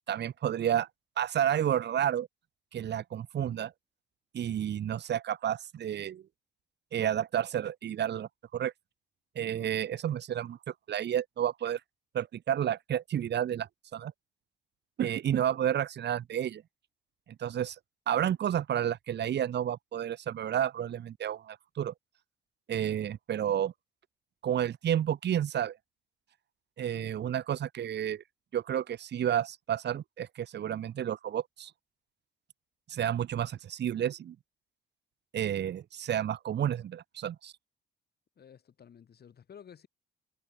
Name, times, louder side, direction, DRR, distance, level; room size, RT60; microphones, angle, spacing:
voice 1, 0.1-0.9 1.2-2.3 2.7-3.7 4.3-6.2 6.9-8.7 9.3-10.6 10.9-11.8 12.1-14.1 15.0-16.6 17.4-17.8 18.1-21.9 22.7-23.7 24.4-25.8 26.8-28.2 28.5-31.7 32.9-34.3 35.3-37.5, right 10 dB, 60° right, 1.6 m, -31 dB
voice 2, 38.4-39.9, left 8 dB, 55° left, 5.5 m, -53 dB
cardioid pair, 90°, 20 cm